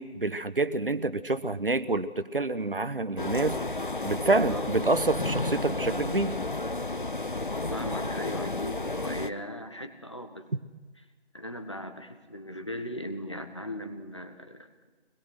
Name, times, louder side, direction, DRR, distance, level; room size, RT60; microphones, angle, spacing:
voice 1, 0.0-3.6 4.0-6.3, right 2 dB, 55° right, 13 dB, 1.3 m, -27 dB
sound 1, 3.2-9.3, left 2 dB, 50° left, 0.9 m, -32 dB
voice 2, 7.7-10.5 11.3-14.9, equal, 25° left, 7 dB, 1.3 m, -38 dB
24.0 x 21.0 x 6.4 m, 1.3 s
figure-of-eight pair, 180°, 33 cm